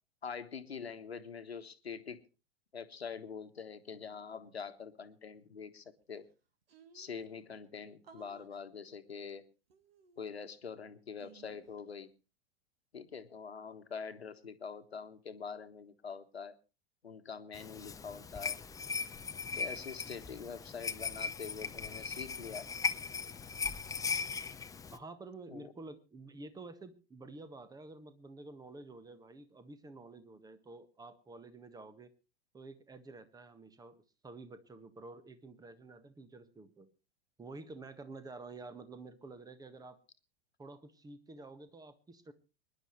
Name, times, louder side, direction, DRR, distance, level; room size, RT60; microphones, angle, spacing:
voice 1, 0.2-2.2 2.7-6.2 6.9-9.5 10.2-12.1 12.9-16.5 17.0-18.6 19.5-22.7 25.5-25.7, left 6 dB, 80° left, 9 dB, 1.5 m, -45 dB
sound 1, 6.0-6.1 6.3-6.4 6.7-7.3 8.0-8.6 9.7-10.6 11.2-11.8, right 5 dB, 70° right, 1.9 m, -59 dB
sound 2, 17.5-25.0, left 5 dB, 10° left, 0.7 m, -38 dB
voice 2, 24.9-32.1 32.5-36.9 37.4-40.0 40.6-42.3, right 3 dB, 10° right, 12 dB, 1.6 m, -50 dB
25.0 x 11.0 x 3.2 m, 0.32 s
figure-of-eight pair, 95°, 31 cm